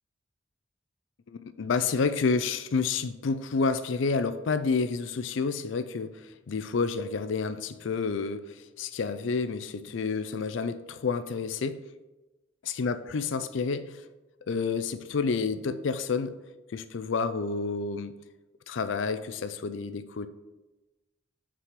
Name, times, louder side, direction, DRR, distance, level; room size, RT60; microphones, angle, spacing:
voice 1, 1.3-11.8 12.7-14.0 14.5-16.4 16.7-18.1 18.7-20.3, left 4 dB, 75° left, 11 dB, 0.5 m, -29 dB
5.9 x 4.9 x 5.9 m, 1.1 s
head